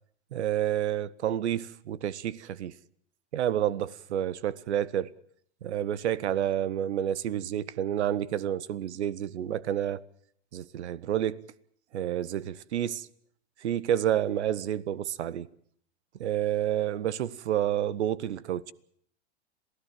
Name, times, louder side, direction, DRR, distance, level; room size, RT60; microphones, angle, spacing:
voice 1, 0.3-2.8 3.3-5.1 5.6-10.0 10.5-11.4 11.9-13.1 13.6-15.5 16.2-18.7, right 11 dB, 70° right, 1.2 m, -29 dB
27.5 x 17.0 x 7.6 m
hypercardioid pair, 105°, 34 cm